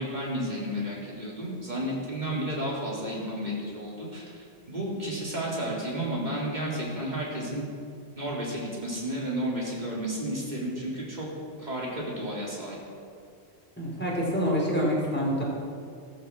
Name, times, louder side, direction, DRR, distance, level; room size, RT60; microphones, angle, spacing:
voice 1, 0.0-7.6 8.2-11.3 11.6-12.8, right 1 dB, 40° right, -4 dB, 3.8 m, -32 dB
voice 2, 13.8-15.4, equal, 10° left, -5 dB, 4.6 m, -26 dB
15.0 x 14.0 x 6.2 m, 2.3 s
omnidirectional pair, 1.2 m